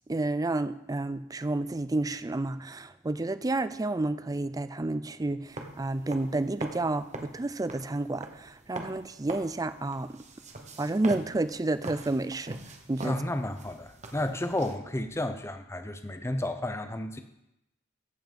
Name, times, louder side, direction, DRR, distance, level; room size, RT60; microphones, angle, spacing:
voice 1, 0.1-5.5 5.8-10.1 10.8-12.6 12.9-13.2, right 2 dB, 20° right, 13 dB, 0.4 m, -30 dB
sound 1, 5.5-14.8, right 2 dB, 35° right, 1.1 m, -43 dB
voice 2, 13.0-17.2, left 1 dB, 15° left, 8 dB, 0.8 m, -32 dB
14.5 x 5.9 x 5.3 m, 0.86 s
head